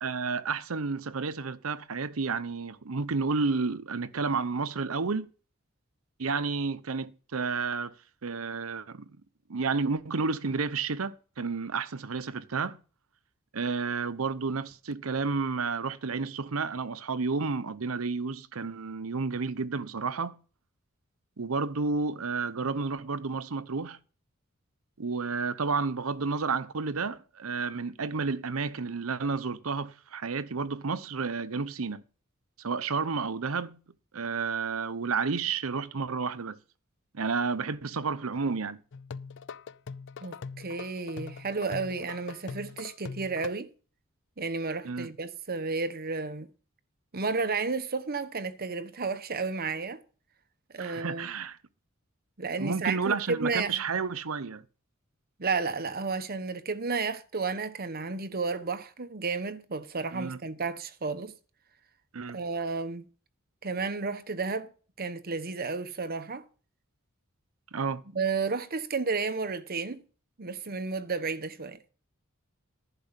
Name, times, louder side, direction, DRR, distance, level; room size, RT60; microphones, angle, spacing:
voice 1, 0.0-5.3 6.2-7.9 8.2-9.1 9.5-12.8 13.5-20.4 21.4-24.0 25.0-32.0 32.6-33.8 34.1-36.6 37.1-38.8 44.8-45.1 50.8-51.6 52.6-54.6 60.1-60.4 62.1-62.4 67.7-68.0, right 4 dB, 75° right, 0.8 m, -31 dB
sound 1, 38.9-43.5, left 5 dB, 60° left, 0.5 m, -42 dB
voice 2, 40.2-43.7 44.4-46.5 47.1-50.0 50.7-51.3 52.4-53.8 55.4-61.3 62.3-63.0 63.6-64.7 65.0-66.4 68.1-70.0 70.4-71.8, right 4 dB, 45° right, 1.1 m, -32 dB
11.0 x 5.3 x 8.1 m
head